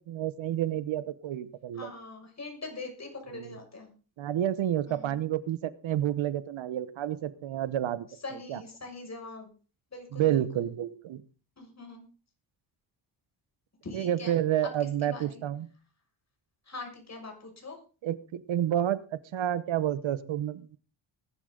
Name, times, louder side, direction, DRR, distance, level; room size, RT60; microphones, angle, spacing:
voice 1, 0.0-1.9 3.3-3.5 4.2-8.1 8.5-8.6 10.1-11.2 13.9-15.7 18.0-20.8, right 11 dB, 70° right, 15 dB, 1.0 m, -30 dB
voice 2, 1.7-3.9 4.9-5.2 8.2-9.5 9.9-10.7 11.6-12.1 13.8-14.4 14.8-15.4 16.7-17.8, left 3 dB, 35° left, 2 dB, 6.4 m, -42 dB
19.5 x 11.5 x 3.9 m, 0.37 s
cardioid pair, 110°, 48 cm